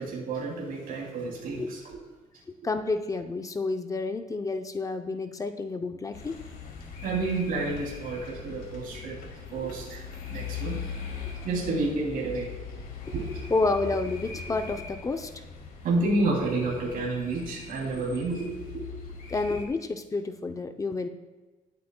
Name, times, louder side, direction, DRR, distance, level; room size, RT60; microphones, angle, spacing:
voice 1, 0.0-2.0 7.0-9.2 9.5-10.9 11.4-12.8 13.1-13.4 15.8-19.0, right 2 dB, 75° right, -3 dB, 2.9 m, -30 dB
voice 2, 2.6-6.4 13.5-15.4 19.3-21.1, left 3 dB, 20° left, 7 dB, 0.6 m, -30 dB
sound 1, 6.1-19.7, left 6 dB, 80° left, 2.3 m, -40 dB
20.0 x 8.4 x 2.3 m, 1.2 s
cardioid pair, 150°, 15 cm